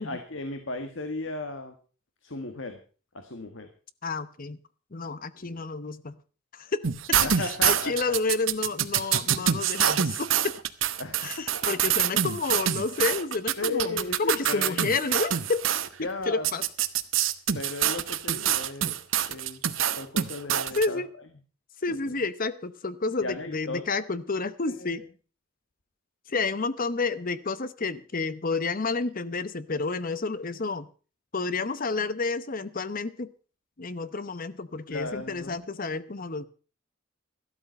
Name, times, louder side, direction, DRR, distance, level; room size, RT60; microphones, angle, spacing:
voice 1, 0.0-1.7 2.2-2.8 3.1-3.7 5.4-5.6 7.2-8.2 9.3-9.5 11.0-11.7 13.6-14.8 16.0-16.5 17.5-19.6 20.0-21.0 21.9-22.0 23.2-23.8 24.7-25.0 34.9-35.6, left 2 dB, 70° left, 7 dB, 1.6 m, -35 dB
voice 2, 4.0-4.6 4.9-6.2 6.5-6.8 7.2-10.5 11.2-15.7 16.3-16.6 20.8-21.1 21.8-25.0 26.3-30.9 31.3-33.3 33.8-36.5, left 4 dB, 45° left, 15 dB, 0.9 m, -30 dB
sound 1, 6.8-15.9 16.4-20.9, right 10 dB, 70° right, 1.0 m, -26 dB
13.5 x 12.5 x 5.3 m, 0.38 s
head